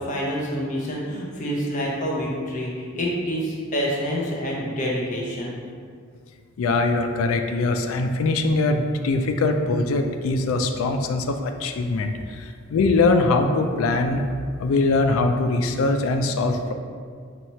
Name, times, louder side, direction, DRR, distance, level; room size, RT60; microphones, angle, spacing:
voice 1, 0.0-5.5, equal, 35° left, -4 dB, 0.6 m, -27 dB
voice 2, 6.6-14.2 14.6-16.7, left 3 dB, 75° left, 6 dB, 0.3 m, -22 dB
3.0 x 2.8 x 4.2 m, 2.1 s
head